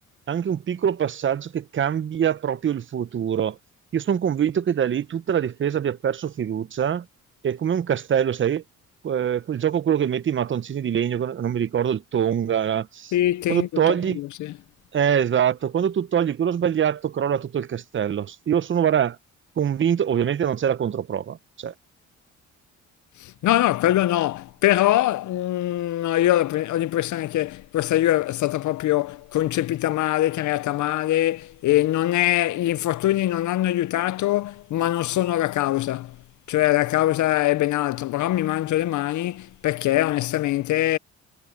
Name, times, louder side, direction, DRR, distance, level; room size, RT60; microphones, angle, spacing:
voice 1, 0.3-3.6 3.9-7.0 7.4-8.6 9.0-13.1 13.5-14.2 14.9-19.2 19.6-21.7, right 9 dB, 40° right, 0.8 m, -24 dB
voice 2, 13.1-14.6 23.2-36.2 36.5-41.0, left 14 dB, 75° left, 0.7 m, -23 dB
cardioid pair, 90°, 30 cm